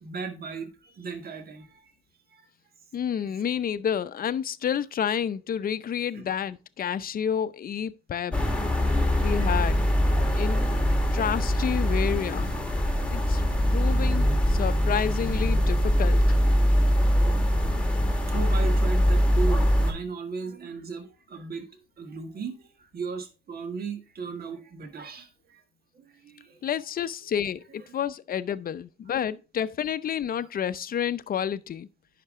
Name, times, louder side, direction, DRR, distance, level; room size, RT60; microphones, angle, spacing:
voice 1, 0.0-1.9 2.3-2.5 6.1-6.2 8.9-9.5 10.2-11.0 17.9-18.0 18.3-25.6 25.9-26.6 27.9-28.0 29.1-29.2, right 5 dB, 50° right, 1.6 m, -37 dB
voice 2, 2.9-8.4 9.2-9.9 10.3-10.7 11.1-12.5 13.1-13.4 13.7-16.2 26.6-31.9, left 8 dB, 45° left, 0.6 m, -29 dB
sound 1, 8.3-19.9, equal, 5° left, 1.9 m, -23 dB
9.7 x 5.9 x 3.7 m
cardioid pair, 90°, 20 cm